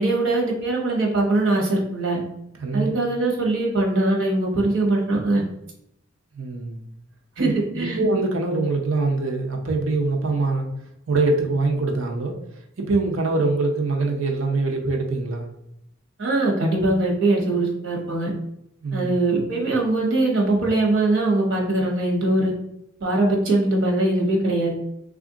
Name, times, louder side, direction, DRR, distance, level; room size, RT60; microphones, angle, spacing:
voice 1, 0.0-2.2 2.7-5.4 7.4-8.0 16.2-18.3 18.9-22.5 23.0-24.8, right 2 dB, 70° right, -1 dB, 1.0 m, -21 dB
voice 2, 2.6-2.9 6.3-6.8 7.4-10.7 11.1-12.3 12.8-15.5 18.8-19.1, right 3 dB, 85° right, 2 dB, 0.7 m, -23 dB
3.4 x 2.5 x 3.7 m, 0.78 s
head